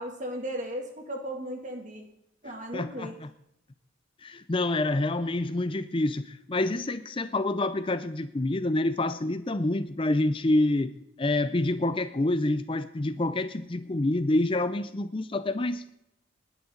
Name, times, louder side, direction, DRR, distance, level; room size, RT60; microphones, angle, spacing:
voice 1, 0.0-2.0 2.4-3.1, equal, 40° right, 3 dB, 2.5 m, -36 dB
voice 2, 2.4-3.3 4.2-10.9 11.2-15.9, left 2 dB, 25° left, 12 dB, 0.5 m, -27 dB
19.5 x 10.5 x 3.9 m, 0.81 s
head